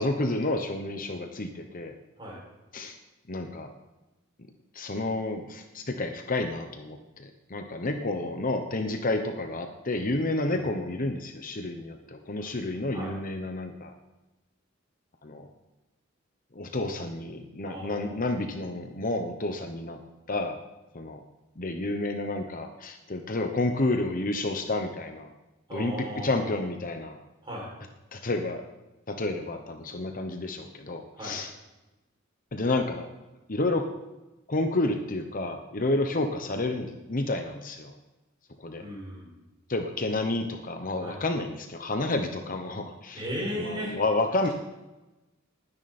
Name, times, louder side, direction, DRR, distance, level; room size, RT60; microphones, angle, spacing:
voice 1, 0.0-1.9 2.7-2.9 3.3-3.7 4.7-13.9 15.2-15.5 16.5-20.0 20.3-20.6 20.9-21.2 21.6-25.3 25.7-25.9 26.2-27.2 28.1-28.6 29.1-31.5 32.5-33.1 33.5-33.9 34.5-37.9 38.6-38.8 39.7-43.2 43.5-44.5, left 2 dB, 40° left, 5 dB, 1.1 m, -30 dB
voice 2, 17.6-18.2 25.7-26.7 27.4-27.7 31.1-31.4 38.8-39.3 41.0-41.2 43.1-44.0 44.4-44.5, equal, 25° right, -4 dB, 6.4 m, -36 dB
20.0 x 9.9 x 4.3 m, 1.0 s
head